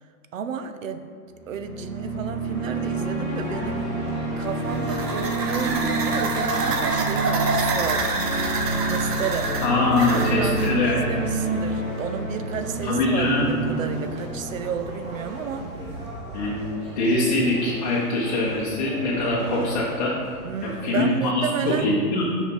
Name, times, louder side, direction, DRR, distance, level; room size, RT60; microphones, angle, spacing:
voice 1, 0.3-1.1 1.5-3.9 4.4-8.1 8.8-9.5 10.1-15.7 20.4-22.0, right 6 dB, 55° right, 9 dB, 0.6 m, -32 dB
sound 1, 1.3-15.5, right 2 dB, ahead, 1.9 m, -28 dB
sound 2, 3.3-21.2, right 1 dB, 20° right, 0.7 m, -39 dB
sound 3, 4.5-10.8, right 3 dB, 80° right, 1.2 m, -27 dB
voice 2, 9.6-11.0 12.8-13.5 16.3-16.6 17.0-20.1 20.6-22.2, left 2 dB, 25° left, -5 dB, 0.8 m, -23 dB
6.4 x 5.1 x 5.4 m, 2.1 s
hypercardioid pair, 165°, 47 cm